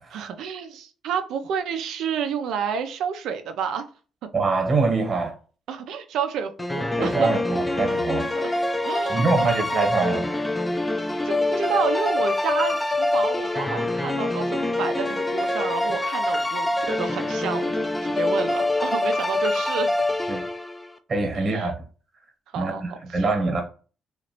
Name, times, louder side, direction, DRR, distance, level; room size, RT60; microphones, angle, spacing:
voice 1, 0.1-3.9 5.7-7.3 8.4-8.5 8.9-10.0 10.8-10.9 11.2-19.9 21.4-21.7 22.5-23.4, right 7 dB, 80° right, 0.5 m, -30 dB
voice 2, 4.3-5.3 7.0-8.3 9.1-10.2 20.3-20.5 21.1-21.8 22.6-23.6, right 3 dB, 40° right, 1.1 m, -24 dB
sound 1, 6.6-20.9, left 2 dB, 10° left, 0.4 m, -25 dB
3.0 x 2.5 x 2.8 m
cardioid pair, 90°, 0 cm